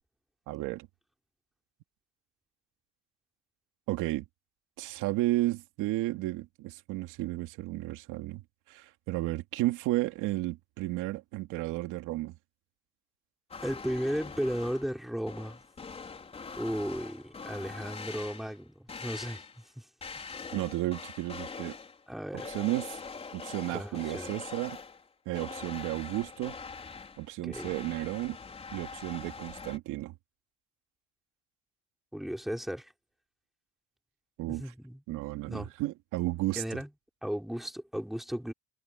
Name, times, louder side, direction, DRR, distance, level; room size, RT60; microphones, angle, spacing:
voice 1, 0.5-0.9 3.9-4.3 4.8-8.4 8.7-12.4 20.5-21.8 22.4-23.0 23.3-24.8 25.3-26.5 27.2-28.4 28.7-30.1 34.4-34.6 35.1-36.6, right 18 dB, 75° right, 2.8 m, -33 dB
sound 1, 13.5-15.0 15.3-18.6 18.9-19.7 20.0-22.0 22.4-25.1 25.4-29.8, left 5 dB, 20° left, 4.6 m, -43 dB
voice 2, 13.6-15.6 16.6-19.4 19.8-19.9 22.1-22.5 23.7-24.3 27.4-27.7 32.1-32.9 34.5-35.0 35.4-35.7 36.5-36.9 37.2-38.5, equal, ahead, 3.2 m, -35 dB
cardioid pair, 165°, 31 cm